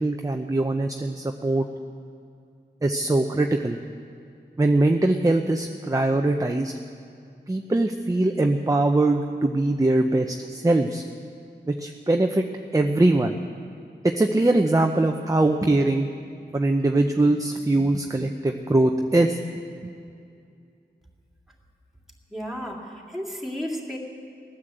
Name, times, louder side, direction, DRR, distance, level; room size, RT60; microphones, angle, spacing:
voice 1, 0.0-1.7 2.8-3.8 4.6-6.7 7.5-11.0 11.7-12.4 12.7-13.4 14.0-16.1 16.5-19.4, right 2 dB, 20° right, 4 dB, 0.7 m, -22 dB
voice 2, 22.3-24.0, equal, ahead, -1 dB, 2.6 m, -33 dB
18.0 x 9.8 x 7.8 m, 2.4 s
wide cardioid pair, 70°, 18 cm